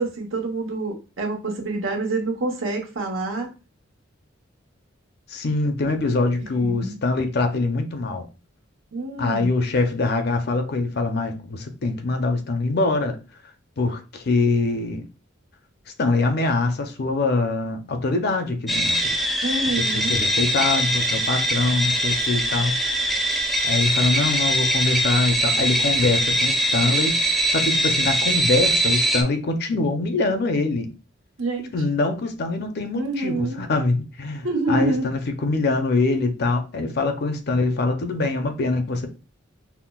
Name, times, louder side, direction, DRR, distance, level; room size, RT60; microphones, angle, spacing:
voice 1, 0.0-3.5 6.6-6.9 8.9-9.5 19.4-20.2 31.4-31.7 32.9-33.6 34.4-35.1, right 2 dB, 80° right, 1.0 m, -27 dB
voice 2, 5.3-8.3 9.2-13.2 13.8-15.0 16.0-19.1 19.8-22.7 23.6-30.9 31.7-39.1, left 3 dB, 55° left, 0.5 m, -24 dB
sound 1, 18.7-29.2, equal, ahead, 0.3 m, -22 dB
5.6 x 2.1 x 2.3 m
head